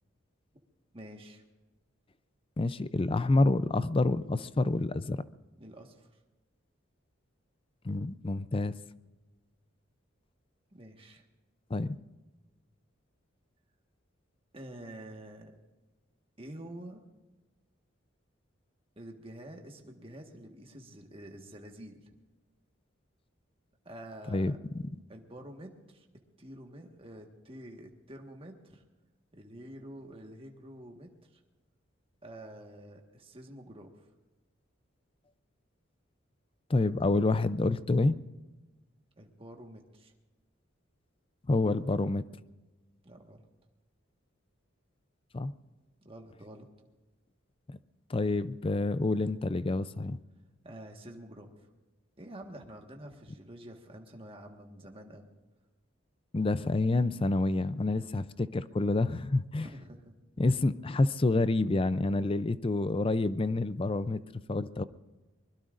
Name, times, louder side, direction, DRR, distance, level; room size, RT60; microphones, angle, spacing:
voice 1, 0.9-1.4 5.6-6.2 10.7-11.2 14.5-15.5 16.4-17.1 18.9-22.1 23.8-24.6 25.1-26.1 26.4-28.8 29.3-31.4 32.2-34.1 39.2-40.1 43.0-43.5 46.0-46.7 50.6-51.7 52.2-55.3 59.6-60.1, right 1 dB, 30° right, 2 dB, 1.5 m, -48 dB
voice 2, 2.6-5.2 7.8-8.7 11.7-12.0 24.3-24.9 36.7-38.1 41.5-42.2 45.3-45.5 47.7-47.8 48.1-50.2 56.3-59.7 60.4-64.2 64.5-64.8, left 2 dB, 25° left, 15 dB, 0.5 m, -28 dB
23.5 x 21.5 x 2.6 m, 1.2 s
head